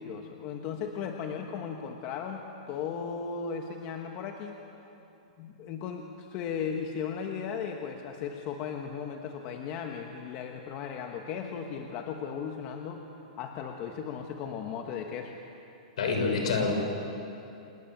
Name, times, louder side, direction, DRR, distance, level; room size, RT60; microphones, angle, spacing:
voice 1, 0.0-4.6 5.4-13.1 13.4-15.4, left 6 dB, 25° left, 3 dB, 1.2 m, -36 dB
voice 2, 16.0-16.7, left 4 dB, 60° left, 3 dB, 6.0 m, -26 dB
28.5 x 19.5 x 9.0 m, 2.9 s
supercardioid pair, 175°, 4 cm